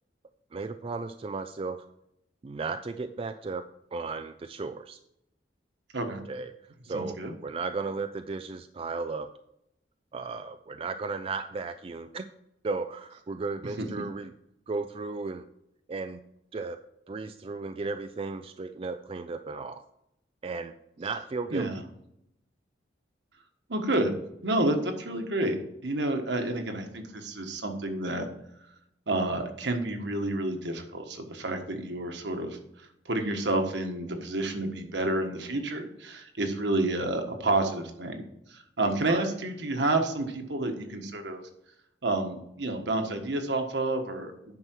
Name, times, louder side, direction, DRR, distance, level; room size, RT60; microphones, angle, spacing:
voice 1, 0.5-1.9 2.4-5.0 6.1-6.5 6.8-9.3 10.1-12.2 12.6-14.3 14.7-15.4 15.9-16.2 16.5-16.8 17.1-19.8 20.4-21.7 39.1-39.3, right 4 dB, 30° right, 8 dB, 0.4 m, -35 dB
voice 2, 6.9-7.3 13.8-13.9 21.5-21.8 23.7-24.1 24.4-25.6 25.8-28.3 29.1-32.6 33.0-38.2 38.5-41.4 42.0-44.6, right 2 dB, 70° right, 5 dB, 1.5 m, -29 dB
9.8 x 6.0 x 4.6 m, 0.81 s
head